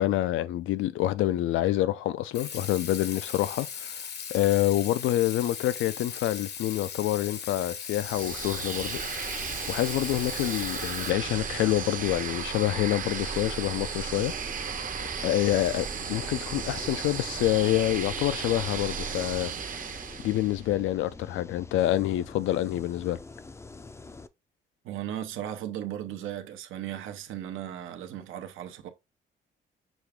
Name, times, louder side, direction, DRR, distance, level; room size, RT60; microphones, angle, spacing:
voice 1, 0.0-3.9 4.3-9.4 9.7-14.3 15.2-19.5 20.2-23.2, left 14 dB, 85° left, 0.5 m, -27 dB
Water tap faucet / Sink (filling or washing), 2.3-11.1, left 7 dB, 60° left, 0.8 m, -38 dB
sound 1, 7.9-20.7, right 6 dB, 45° right, 0.7 m, -35 dB
sound 2, 14.3-24.3, left 3 dB, 15° left, 0.4 m, -46 dB
voice 2, 24.8-28.9, right 11 dB, 85° right, 0.8 m, -36 dB
6.1 x 2.4 x 3.5 m
cardioid pair, 90°, 20 cm